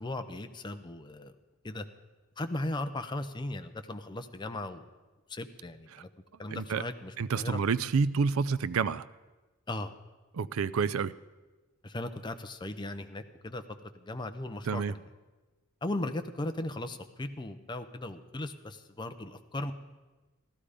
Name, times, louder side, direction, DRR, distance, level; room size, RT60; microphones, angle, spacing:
voice 1, 0.0-1.3 1.6-1.9 2.4-4.9 5.3-6.1 6.4-7.6 9.7-9.9 11.8-15.0 15.8-19.7, left 2 dB, 20° left, 8 dB, 0.6 m, -37 dB
voice 2, 6.5-6.8 7.2-9.0 10.3-11.1 14.7-14.9, right 5 dB, 70° right, 17 dB, 0.4 m, -29 dB
15.0 x 12.5 x 5.0 m, 1.2 s
head